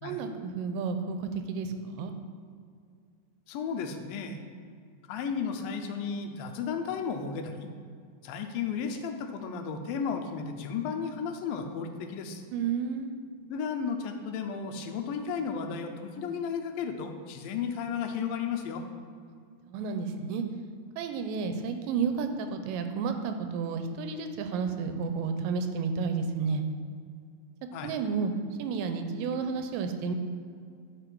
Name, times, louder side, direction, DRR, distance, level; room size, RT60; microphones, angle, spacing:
voice 1, 0.0-2.1 12.5-13.2 19.7-20.4 21.0-26.6 27.8-28.3 28.6-30.1, right 5 dB, 80° right, 7 dB, 2.2 m, -31 dB
voice 2, 3.5-4.4 5.1-7.7 8.2-12.4 13.5-18.8 27.7-27.9, left 6 dB, 80° left, 5 dB, 2.4 m, -34 dB
12.0 x 4.1 x 4.6 m, 2.2 s
omnidirectional pair, 4.2 m